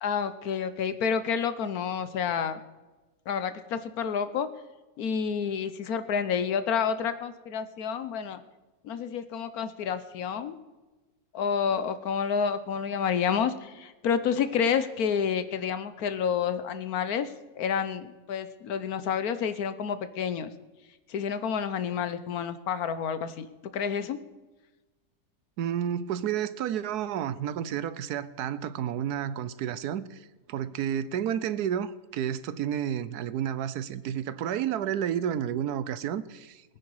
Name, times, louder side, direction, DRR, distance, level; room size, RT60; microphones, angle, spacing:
voice 1, 0.0-2.6 3.3-4.5 5.0-8.4 8.8-10.5 11.3-20.5 21.1-23.5 23.7-24.2, left 7 dB, 70° left, 1.3 m, -29 dB
voice 2, 25.6-36.6, right 9 dB, 80° right, 1.3 m, -31 dB
21.0 x 9.7 x 4.8 m
omnidirectional pair, 1.7 m